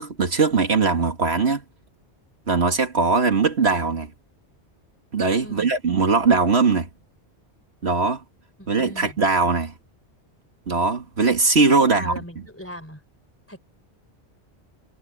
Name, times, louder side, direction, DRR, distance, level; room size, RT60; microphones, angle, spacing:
voice 1, 0.0-1.6 2.5-4.1 5.1-6.9 7.8-8.2 8.7-9.7 10.7-12.1, right 4 dB, 70° right, 2.1 m, -20 dB
voice 2, 5.4-5.7 8.6-9.2 11.8-13.0 13.5-13.6, equal, 10° left, 3.6 m, -39 dB
omnidirectional pair, 1.1 m